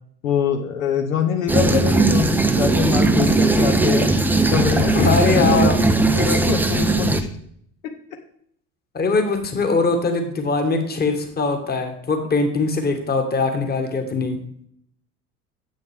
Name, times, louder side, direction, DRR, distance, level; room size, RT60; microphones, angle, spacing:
voice 1, 0.2-4.1 4.5-5.7 6.1-7.2, left 7 dB, 65° left, 4 dB, 1.0 m, -24 dB
sound 1, 1.5-7.2, right 2 dB, 5° right, 0.5 m, -18 dB
voice 2, 4.9-5.7 8.9-14.4, left 3 dB, 20° left, 6 dB, 1.5 m, -21 dB
9.2 x 7.8 x 3.5 m, 0.66 s
figure-of-eight pair, 65°, 43 cm